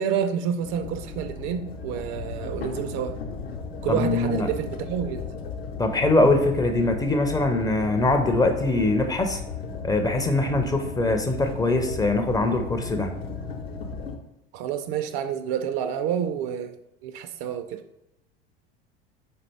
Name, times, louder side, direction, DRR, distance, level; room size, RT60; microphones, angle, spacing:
voice 1, 0.0-3.2 3.8-5.2 14.5-16.8 17.0-17.8, right 8 dB, 45° right, 0.4 m, -28 dB
sound 1, 0.6-14.2, left 4 dB, 75° left, 0.8 m, -35 dB
voice 2, 3.9-4.5 5.8-9.4 9.8-13.1, left 2 dB, 15° left, 0.4 m, -22 dB
4.2 x 3.8 x 3.3 m
figure-of-eight pair, 75°, 30 cm